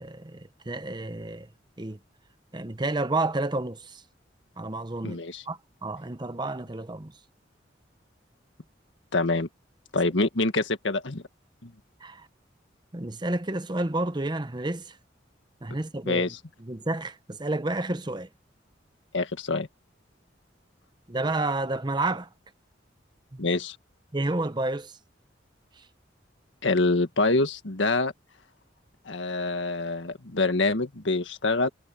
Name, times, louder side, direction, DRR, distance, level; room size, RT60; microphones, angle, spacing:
voice 1, 0.0-1.5 1.8-2.0 2.5-4.0 4.6-7.1 12.0-12.3 12.9-15.0 15.6-16.3 16.6-18.3 21.1-22.3 23.3-23.5 24.1-25.0 25.8-25.9, right 2 dB, 25° right, 0.9 m, -30 dB
voice 2, 5.0-5.4 9.1-9.5 9.9-11.2 11.6-11.7 16.1-16.4 19.1-19.7 23.4-23.8 26.6-28.1 29.1-31.7, left 3 dB, 85° left, 1.7 m, -25 dB
head